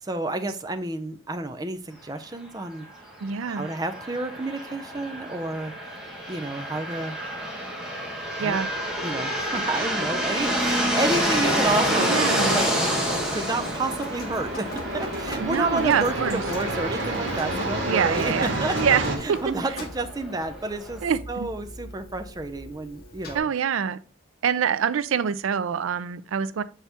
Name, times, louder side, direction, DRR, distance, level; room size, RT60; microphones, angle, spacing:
voice 1, 0.0-2.9 3.5-5.7 6.3-7.2 8.4-8.6 9.0-18.3 18.6-21.0 21.3-23.5, right 2 dB, 20° right, 0.5 m, -30 dB
voice 2, 3.2-3.7 8.4-8.7 12.0-12.7 15.4-16.4 17.9-19.0 19.3-19.4 21.0-21.5 23.3-24.0 24.4-26.6, right 7 dB, 85° right, 0.4 m, -25 dB
sound 1, 3.5-21.0, equal, 5° right, 1.3 m, -29 dB
sound 2, 8.6-19.2, right 1 dB, 60° right, 1.7 m, -32 dB
Drip, 10.4-23.4, equal, 50° left, 1.3 m, -41 dB
7.1 x 4.3 x 3.4 m
head